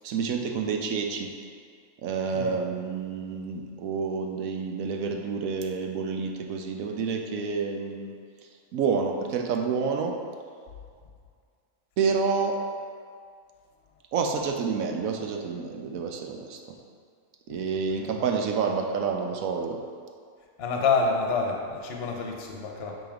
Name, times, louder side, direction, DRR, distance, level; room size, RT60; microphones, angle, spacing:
voice 1, 0.0-1.3 2.0-8.1 8.7-10.2 12.0-12.6 14.1-16.8 17.5-19.8, right 5 dB, 70° right, 3 dB, 1.0 m, -28 dB
voice 2, 20.6-23.0, left 4 dB, 50° left, 1 dB, 1.0 m, -28 dB
8.8 x 3.0 x 5.0 m, 2.1 s
omnidirectional pair, 1.5 m